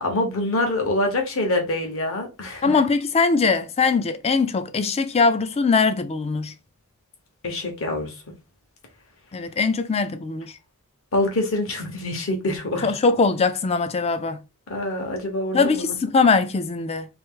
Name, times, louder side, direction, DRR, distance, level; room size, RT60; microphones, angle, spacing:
voice 1, 0.0-2.6 7.4-8.1 11.1-12.9 14.7-15.9, left 2 dB, 60° left, 1.1 m, -25 dB
voice 2, 2.6-6.5 9.3-10.5 12.8-14.4 15.5-17.1, left 4 dB, 25° left, 0.4 m, -21 dB
2.9 x 2.9 x 3.7 m
head